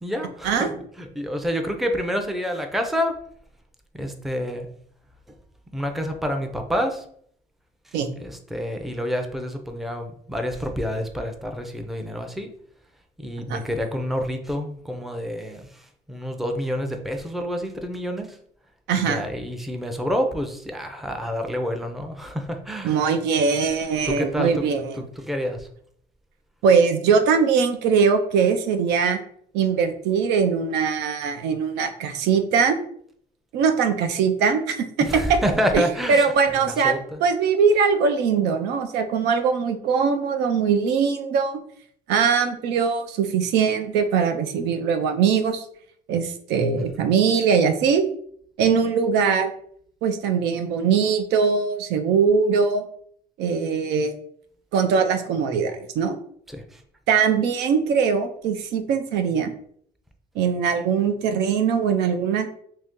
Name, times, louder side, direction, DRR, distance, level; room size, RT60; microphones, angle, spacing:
voice 1, 0.0-3.2 3.9-4.7 5.3-5.4 5.7-7.0 7.9-12.5 13.2-18.4 19.0-23.0 24.1-24.7 25.2-25.7 35.0-37.2 46.8-46.9 56.5-56.8, equal, ahead, 4 dB, 0.4 m, -28 dB
voice 2, 18.9-19.2 22.8-25.0 26.6-29.2 29.5-32.8 33.5-35.4 35.7-35.8 36.1-41.6 42.1-45.6 46.1-48.0 48.6-49.5 50.0-52.8 53.4-54.1 54.7-56.2 57.1-59.5 60.4-62.5, right 6 dB, 85° right, 7 dB, 0.5 m, -21 dB
2.8 x 2.7 x 3.5 m, 0.63 s
cardioid pair, 110°, 17 cm